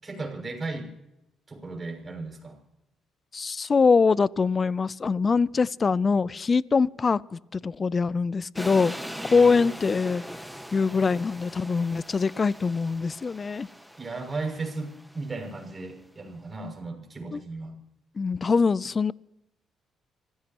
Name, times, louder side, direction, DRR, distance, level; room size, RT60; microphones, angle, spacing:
voice 1, 0.0-0.9 1.5-2.5 9.3-9.7 14.0-17.7, right 3 dB, 25° right, 6.4 m, -35 dB
voice 2, 3.3-8.9 9.2-10.2 10.7-13.7 17.3-17.4 18.2-19.1, left 4 dB, 35° left, 0.4 m, -23 dB
sound 1, 8.6-15.7, equal, ahead, 1.4 m, -41 dB
27.0 x 16.0 x 2.9 m
cardioid pair, 90°, 0 cm